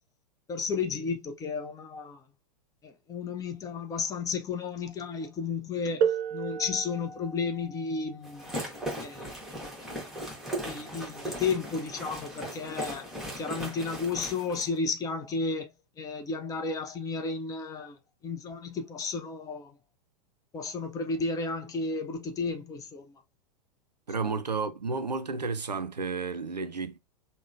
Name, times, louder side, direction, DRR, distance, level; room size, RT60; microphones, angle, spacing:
voice 1, 0.5-2.2 2.8-8.4 9.0-9.3 10.6-13.1 13.4-15.7 16.0-18.0 18.2-19.7 20.5-23.1 24.2-24.4, left 4 dB, 15° left, 0.5 m, -33 dB
sound 1, 6.0-11.4 12.5-12.6 13.4-13.6, right 7 dB, 40° right, 0.7 m, -35 dB
sound 2, 8.2-14.7, right 1 dB, ahead, 1.1 m, -38 dB
voice 2, 24.1-27.0, right 4 dB, 90° right, 0.4 m, -32 dB
3.6 x 2.1 x 2.4 m
figure-of-eight pair, 95°, 21 cm